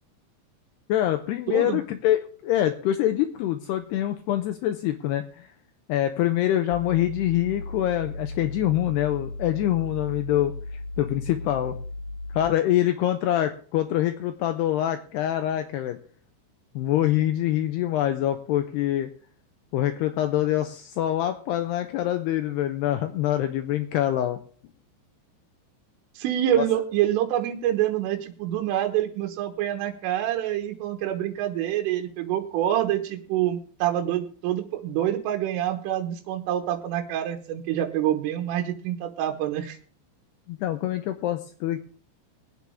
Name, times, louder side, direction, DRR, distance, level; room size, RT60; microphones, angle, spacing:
voice 1, 0.9-5.5 5.9-10.5 11.0-11.7 12.3-16.0 16.8-19.1 19.7-24.4 26.6-26.7 40.5-41.8, left 12 dB, 90° left, 7 dB, 2.4 m, -25 dB
voice 2, 1.5-1.8 26.2-39.8, right 12 dB, 90° right, 5 dB, 3.8 m, -26 dB
sound 1, 6.7-12.5, left 2 dB, 65° left, 1.8 m, -36 dB
22.5 x 8.4 x 3.5 m, 0.42 s
omnidirectional pair, 5.7 m